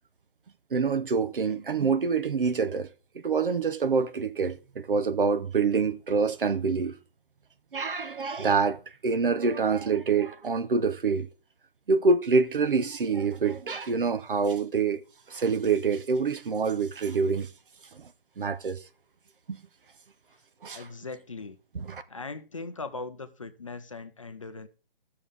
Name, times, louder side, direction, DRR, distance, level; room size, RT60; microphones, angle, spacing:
voice 1, 0.7-2.9 3.1-6.9 7.7-11.3 11.9-15.0 15.3-17.5 17.9-18.1 18.4-18.8 19.5-19.6 20.6-20.8 21.7-22.0, right 5 dB, 65° right, 0.9 m, -26 dB
voice 2, 20.7-21.6 22.1-24.7, left 3 dB, 35° left, 0.6 m, -39 dB
18.0 x 6.7 x 3.5 m
hypercardioid pair, 170°, 29 cm